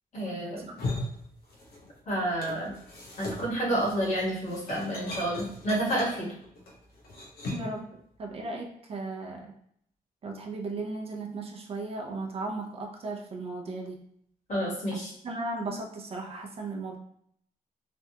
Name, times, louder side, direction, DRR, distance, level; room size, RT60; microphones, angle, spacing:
voice 1, 0.1-0.7 2.1-2.7 3.2-6.3 14.5-15.1, right 1 dB, 55° left, -4 dB, 1.3 m, -29 dB
sound 1, 0.6-2.0 2.2-7.8, left 2 dB, 85° left, 0.8 m, -39 dB
voice 2, 7.5-7.9 8.2-9.5 10.2-14.0 14.9-17.0, right 3 dB, 40° right, 1 dB, 0.5 m, -36 dB
3.3 x 2.3 x 2.7 m, 0.68 s
wide cardioid pair, 155°, 15 cm